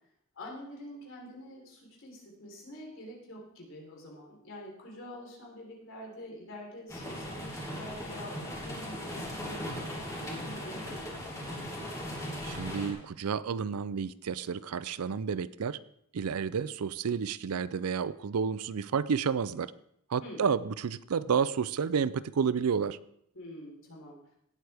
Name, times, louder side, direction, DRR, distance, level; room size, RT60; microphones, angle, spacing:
voice 1, 0.4-11.8 20.2-20.5 23.3-24.2, equal, 65° left, -2 dB, 3.8 m, -46 dB
sound 1, 6.9-12.9, equal, 15° left, 2.5 m, -38 dB
voice 2, 12.4-15.8 16.1-19.7 20.1-23.0, right 6 dB, 90° right, 18 dB, 0.5 m, -30 dB
17.5 x 8.1 x 3.5 m, 0.73 s
head